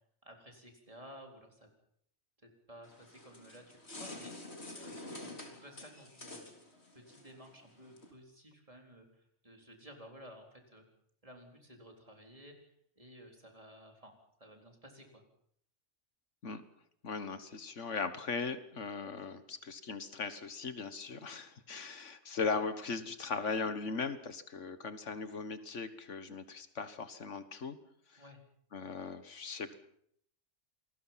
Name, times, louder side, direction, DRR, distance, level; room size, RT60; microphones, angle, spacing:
voice 1, 0.2-1.7 2.4-6.4 6.9-10.8 11.2-15.2 28.2-28.4, equal, 30° right, 2 dB, 4.1 m, -55 dB
sound 1, 2.8-8.1, left 2 dB, 60° left, 4.1 m, -48 dB
voice 2, 17.0-27.8 28.1-28.2 28.7-29.8, left 4 dB, 80° left, 11 dB, 1.8 m, -38 dB
27.5 x 20.5 x 5.8 m, 0.68 s
omnidirectional pair, 1.2 m